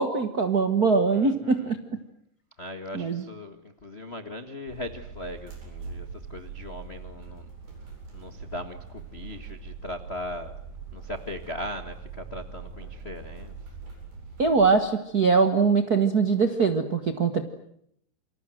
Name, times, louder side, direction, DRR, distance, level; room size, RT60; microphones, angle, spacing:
voice 1, 0.0-2.0 2.9-3.2 14.4-17.4, right 4 dB, 50° right, 6 dB, 1.1 m, -22 dB
voice 2, 1.1-1.7 2.6-7.5 8.1-10.5 10.9-13.5, left 1 dB, 40° left, 7 dB, 0.8 m, -39 dB
sound 1, 4.7-14.7, right 5 dB, 85° right, 10.0 m, -42 dB
28.5 x 26.0 x 7.7 m, 0.72 s
omnidirectional pair, 4.0 m